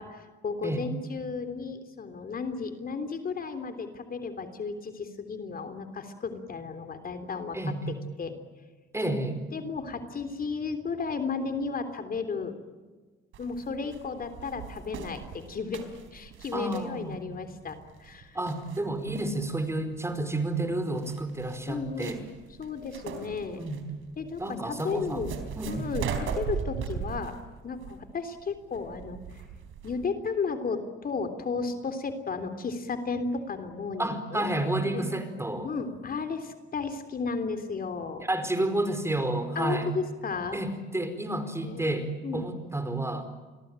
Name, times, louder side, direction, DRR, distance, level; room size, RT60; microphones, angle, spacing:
voice 1, 0.0-7.6 8.2-8.3 9.5-12.5 13.4-15.8 16.1-18.4 21.7-22.2 22.6-23.6 24.2-25.4 25.7-27.3 27.6-29.2 29.8-34.5 34.8-35.2 35.6-38.2 39.6-40.6 41.6-41.9 42.2-42.5, left 4 dB, 45° left, 8 dB, 3.4 m, -34 dB
voice 2, 7.5-8.0 8.9-9.4 16.5-17.2 18.3-22.2 23.6-23.8 24.4-25.3 25.5-25.9 34.0-35.7 38.2-39.9 40.5-43.2, right 1 dB, 15° right, 9 dB, 4.8 m, -30 dB
sound 1, 13.3-30.1, right 7 dB, 80° right, 4.2 m, -39 dB
29.5 x 22.0 x 9.1 m, 1.3 s
cardioid pair, 90°, 20 cm